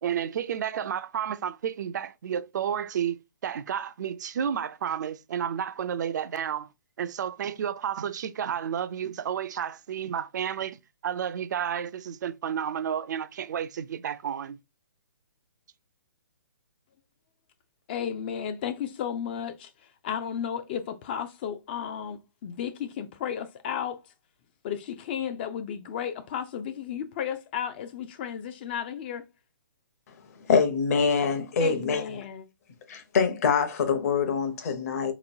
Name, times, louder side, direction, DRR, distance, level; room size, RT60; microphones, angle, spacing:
voice 1, 0.0-6.7 7.0-14.6, right 8 dB, 55° right, 0.4 m, -31 dB
voice 2, 17.9-19.7 20.0-24.0 24.6-29.3 31.6-32.5, left 8 dB, 30° left, 0.4 m, -33 dB
voice 3, 30.5-32.0 32.9-35.1, left 5 dB, 45° left, 0.8 m, -24 dB
4.0 x 3.0 x 2.6 m
hypercardioid pair, 155°, 11 cm